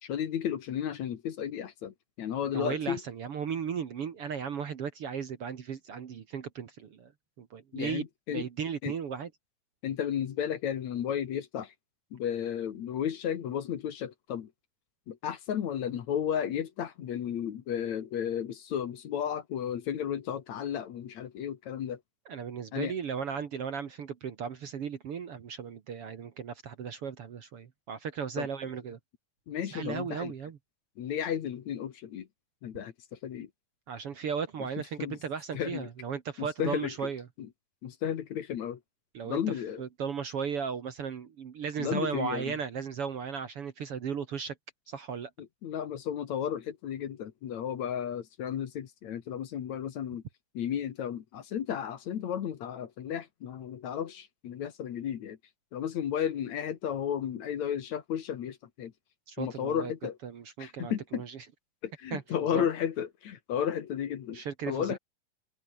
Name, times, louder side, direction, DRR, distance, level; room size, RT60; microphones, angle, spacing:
voice 1, 0.0-3.0 7.7-8.5 8.8-8.9 9.8-11.7 12.1-14.5 15.1-22.0 22.7-22.9 28.4-28.5 29.5-30.3 31.0-32.3 32.6-33.5 35.0-35.2 35.5-35.9 36.4-36.9 37.4-37.5 37.8-38.8 39.2-39.8 41.8-42.5 45.4-50.2 50.5-55.4 55.7-58.9 59.4-60.2 60.6-61.2 61.8-65.0, left 9 dB, 60° left, 2.7 m, -33 dB
voice 2, 2.5-7.1 7.4-9.3 22.3-29.0 29.7-30.6 33.9-37.2 39.1-39.4 39.8-44.6 44.9-45.3 59.3-59.9 60.2-61.5 62.1-62.7 64.3-65.0, right 7 dB, 50° right, 2.1 m, -36 dB
omnidirectional pair, 3.9 m